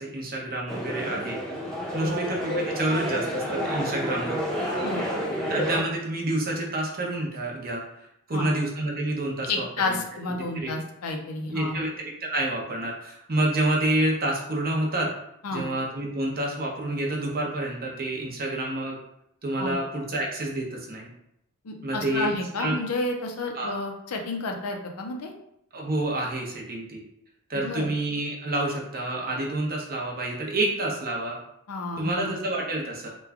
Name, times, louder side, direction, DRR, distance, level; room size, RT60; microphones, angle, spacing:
voice 1, 0.0-1.4 1.9-4.4 5.5-7.8 8.3-10.0 10.5-10.7 11.5-15.1 15.5-19.0 19.4-21.1 21.8-22.3 22.6-22.7 23.5-23.8 25.7-27.0 27.5-31.4 32.0-33.1, right 1 dB, 45° right, -1 dB, 0.8 m, -28 dB
sound 1, 0.7-5.8, equal, ahead, 0.7 m, -29 dB
voice 2, 9.5-11.8 15.4-15.6 19.6-19.8 21.6-25.3 27.5-27.9 31.7-32.3, left 2 dB, 85° left, 3 dB, 0.6 m, -31 dB
3.0 x 2.2 x 3.5 m, 0.76 s
head